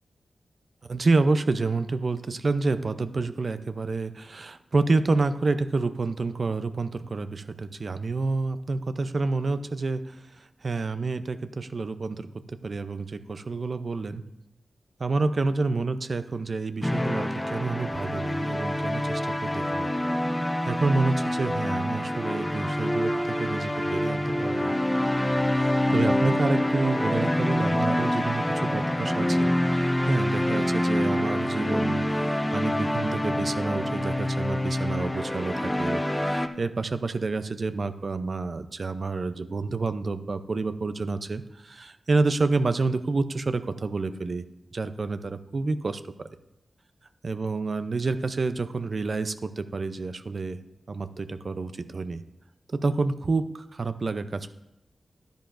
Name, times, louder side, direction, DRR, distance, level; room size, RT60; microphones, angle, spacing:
voice 1, 0.8-12.3 12.6-14.2 15.0-19.9 20.2-20.3 20.7-24.8 25.5-44.4 44.7-46.0 47.2-50.6 50.9-52.2 52.7-54.5, right 3 dB, 55° right, 11 dB, 0.6 m, -28 dB
sound 1, 16.8-36.5, left 1 dB, 10° left, 0.7 m, -26 dB
11.5 x 10.0 x 2.6 m, 0.91 s
cardioid pair, 60°, 0 cm